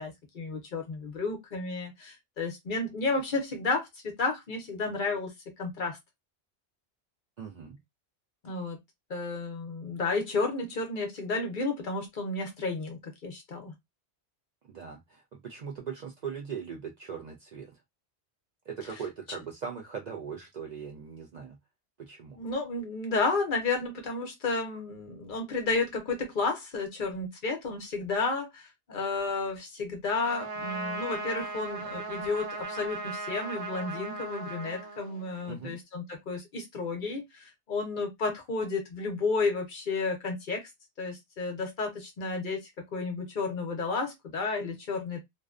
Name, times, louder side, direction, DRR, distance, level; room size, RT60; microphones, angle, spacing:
voice 1, 0.0-5.3 5.6-6.0 8.4-8.8 9.1-13.7 22.4-40.7 41.0-45.2, left 3 dB, 55° left, 0.7 m, -32 dB
voice 2, 7.4-7.8 14.7-17.7 18.7-21.6 22.0-22.4 35.5-35.8, right 6 dB, 55° right, 0.5 m, -40 dB
Trumpet, 30.2-35.5, right 2 dB, 80° right, 1.1 m, -37 dB
2.5 x 2.1 x 2.3 m
omnidirectional pair, 1.1 m